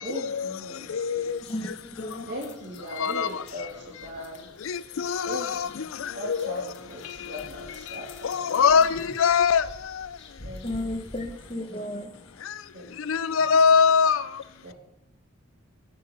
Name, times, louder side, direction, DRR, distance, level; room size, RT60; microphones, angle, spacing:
voice 1, 0.0-1.5 2.3-4.5 5.2-8.8 10.4-10.7 12.7-13.5 14.6-14.7, equal, 55° right, 2.9 m, -40 dB
voice 2, 0.9-1.4 3.0-3.3 4.7-5.4 6.3-6.4 8.3-8.9 9.2-9.6 13.1-14.2, left 6 dB, 80° left, 0.5 m, -21 dB
sound 1, 1.3-11.5, left 2 dB, 60° left, 1.5 m, -48 dB
voice 3, 1.5-2.3 10.6-12.4, left 1 dB, 25° left, 1.2 m, -34 dB
13.5 x 6.5 x 5.5 m
head